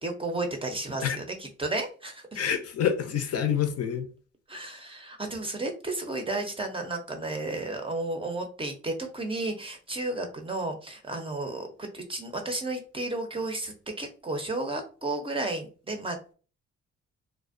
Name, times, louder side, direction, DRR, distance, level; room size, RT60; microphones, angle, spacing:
voice 1, 0.0-2.4 4.5-16.3, right 2 dB, 20° right, 0.5 m, -33 dB
voice 2, 2.3-4.1, left 8 dB, 55° left, 0.5 m, -27 dB
2.4 x 2.0 x 2.4 m
cardioid pair, 90°, 30 cm